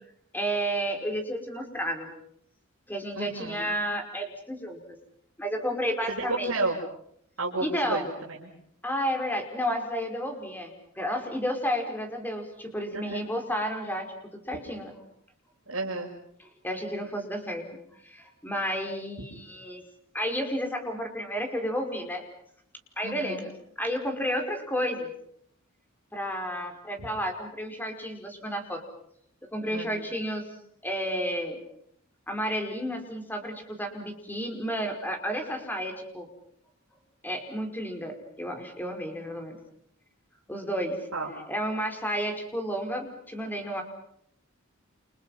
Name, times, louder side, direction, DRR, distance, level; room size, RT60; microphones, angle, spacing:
voice 1, 0.3-2.1 2.9-4.8 5.4-6.5 7.6-8.1 8.8-15.0 16.6-17.6 18.0-19.8 20.1-22.2 23.0-23.5 23.8-25.1 26.1-28.8 29.5-30.4 30.8-31.6 32.3-36.3 37.2-39.6 40.5-41.0 41.5-43.8, equal, 10° left, 4 dB, 5.2 m, -31 dB
voice 2, 3.1-3.7 6.1-6.8 7.4-8.5 12.9-13.2 15.7-16.1 23.0-23.5 29.7-30.0 41.1-41.3, right 2 dB, 75° right, -3 dB, 6.2 m, -32 dB
30.0 x 29.0 x 5.8 m, 0.70 s
head